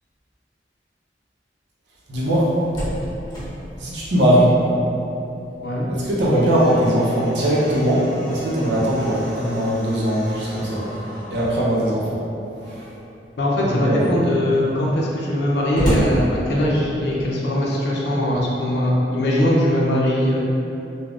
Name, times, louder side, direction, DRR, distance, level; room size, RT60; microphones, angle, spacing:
voice 1, 2.1-2.5 3.8-4.5 5.9-10.9 11.3-12.2 13.7-14.1, equal, 70° right, -6 dB, 0.6 m, -20 dB
Slam, 2.6-5.1 5.5-5.6 6.0-11.7 12.5-13.1 13.6-13.7 13.9-17.1, equal, 25° left, 1.0 m, -31 dB
voice 2, 13.4-20.4, left 1 dB, 65° left, -4 dB, 0.5 m, -21 dB
3.4 x 2.1 x 2.4 m, 2.8 s
head